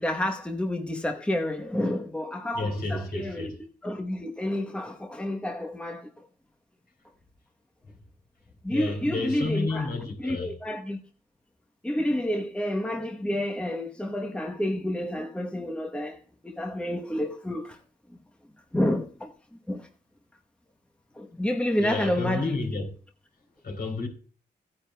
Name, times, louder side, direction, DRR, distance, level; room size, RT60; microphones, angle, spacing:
voice 1, 0.0-3.5 3.8-6.1 8.6-9.9 10.2-11.0 11.8-16.2 16.4-17.8 18.7-19.3 19.7-19.9 21.2-22.4, left 1 dB, 5° left, 1.0 m, -29 dB
voice 2, 2.5-3.6 8.7-10.6 21.8-22.9 23.6-24.1, left 3 dB, 65° left, 3.7 m, -31 dB
15.5 x 9.7 x 2.2 m
cardioid pair, 90°, 18 cm